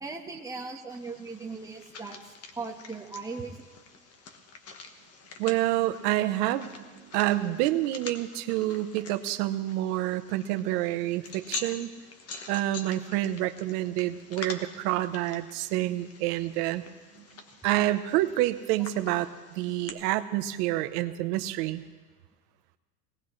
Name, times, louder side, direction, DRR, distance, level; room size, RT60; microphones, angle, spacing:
voice 1, 0.0-3.6, right 4 dB, 5° right, 1 dB, 1.4 m, -38 dB
sound 1, 0.9-19.9, left 4 dB, 30° left, 1.4 m, -46 dB
voice 2, 5.4-11.9 12.5-16.8 17.6-21.8, right 15 dB, 70° right, 11 dB, 1.1 m, -28 dB
22.5 x 18.5 x 3.3 m, 1.3 s
supercardioid pair, 140°, 47 cm